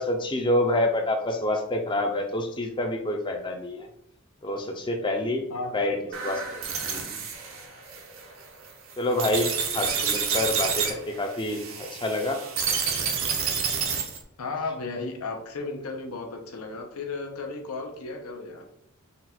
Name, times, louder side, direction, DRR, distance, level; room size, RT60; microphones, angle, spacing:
voice 1, 0.0-3.9 4.4-7.2 9.0-9.5 9.7-12.4, left 1 dB, 20° left, 4 dB, 0.5 m, -27 dB
voice 2, 5.5-6.1 14.4-18.7, left 3 dB, 85° left, 3 dB, 0.7 m, -34 dB
sound 1, 6.1-14.2, right 6 dB, 65° right, 0.7 m, -29 dB
4.0 x 2.3 x 4.2 m, 0.74 s
head